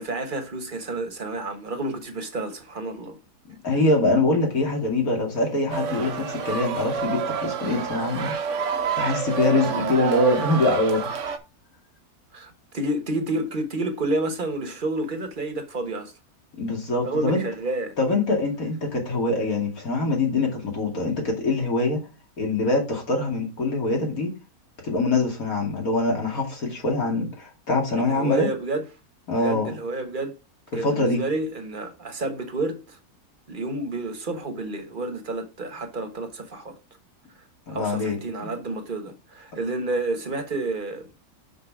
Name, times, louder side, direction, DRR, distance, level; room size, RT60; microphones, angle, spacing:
voice 1, 0.0-3.2 9.7-10.0 12.3-16.1 17.0-18.0 28.0-28.8 29.3-30.3 30.7-33.0 33.5-36.7 37.7-41.1, right 2 dB, 35° right, 1.2 m, -30 dB
voice 2, 3.5-8.4 9.0-11.1 16.6-17.4 18.0-22.0 22.4-24.3 24.8-28.5 29.3-29.7 30.7-31.2 37.7-38.5, left 2 dB, 65° left, 2.8 m, -24 dB
sound 1, 5.7-11.4, right 6 dB, 55° right, 1.1 m, -28 dB
5.9 x 5.6 x 4.8 m
omnidirectional pair, 1.6 m